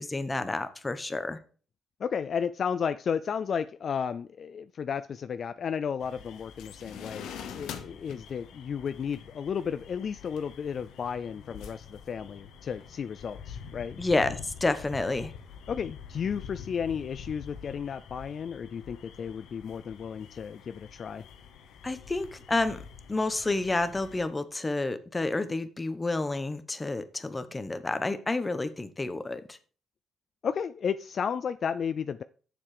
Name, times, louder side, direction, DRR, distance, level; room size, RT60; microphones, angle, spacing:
voice 1, 0.0-1.4 14.0-15.3 21.8-22.8 23.1-29.6, left 2 dB, 20° left, 11 dB, 1.0 m, -30 dB
voice 2, 2.0-14.0 15.7-21.3 30.4-32.2, left 7 dB, 50° left, 12 dB, 0.4 m, -33 dB
sound 1, 6.0-24.3, left 7 dB, 85° left, 1.1 m, -46 dB
7.3 x 7.1 x 4.9 m, 0.40 s
cardioid pair, 90°, 0 cm